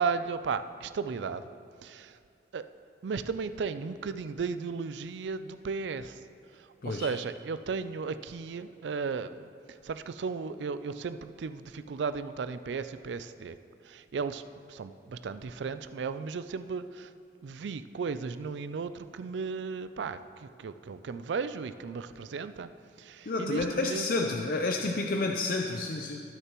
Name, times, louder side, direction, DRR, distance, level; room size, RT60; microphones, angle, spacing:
voice 1, 0.0-1.4 1.8-2.2 2.5-2.6 3.0-6.2 6.8-9.5 9.8-13.6 13.9-14.4 14.7-17.1 17.4-22.7 23.0-24.3, right 5 dB, 85° right, 12 dB, 0.4 m, -35 dB
voice 2, 23.3-26.2, left 3 dB, 50° left, 2 dB, 0.5 m, -30 dB
19.5 x 6.7 x 3.0 m, 2.4 s
head